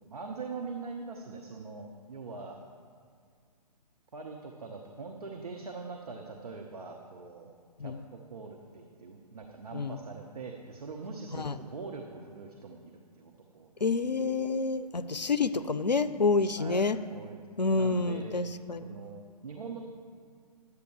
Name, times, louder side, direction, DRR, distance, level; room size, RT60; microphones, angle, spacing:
voice 1, 0.0-2.6 4.1-7.5 7.8-13.8 16.6-18.4 18.8-19.9, right 4 dB, 65° right, 2 dB, 1.0 m, -43 dB
voice 2, 13.8-17.0 17.6-18.9, left 3 dB, 90° left, 13 dB, 0.4 m, -28 dB
10.5 x 8.5 x 4.9 m, 2.1 s
figure-of-eight pair, 125°, 21 cm